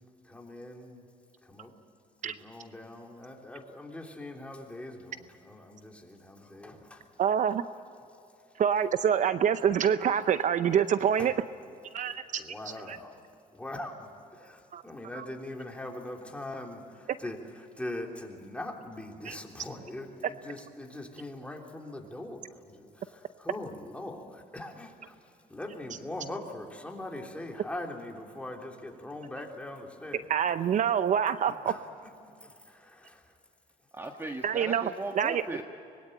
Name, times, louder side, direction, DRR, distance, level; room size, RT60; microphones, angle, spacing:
voice 1, 0.2-1.0 1.4-1.7 2.2-7.1 11.2-11.3 12.4-13.2 13.5-17.4 17.8-25.2 25.5-30.2 31.6-31.8 32.2-33.3, left 1 dB, 5° left, 3.4 m, -41 dB
voice 2, 7.2-7.7 8.6-11.3 11.9-12.4 12.9-13.0 14.7-14.8 15.1-15.3 19.2-19.4 30.3-31.7 34.4-34.9 35.2-35.4, right 8 dB, 50° right, 0.7 m, -26 dB
voice 3, 33.9-35.6, right 2 dB, 15° right, 1.4 m, -37 dB
25.0 x 21.0 x 8.9 m
cardioid pair, 110°, 17 cm